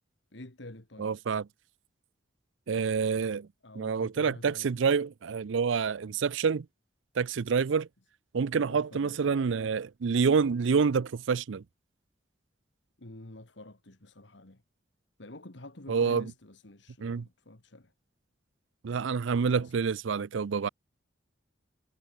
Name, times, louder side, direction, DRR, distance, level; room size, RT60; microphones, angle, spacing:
voice 1, 0.3-1.1 3.6-4.9 8.7-9.4 13.0-14.6 15.2-17.9 19.4-19.7, left 1 dB, 65° left, 2.1 m, -49 dB
voice 2, 1.0-1.4 2.7-3.5 3.8-6.7 7.2-7.9 8.3-11.6 15.9-16.3 17.0-17.3 18.8-20.7, right 5 dB, 75° right, 0.5 m, -27 dB
head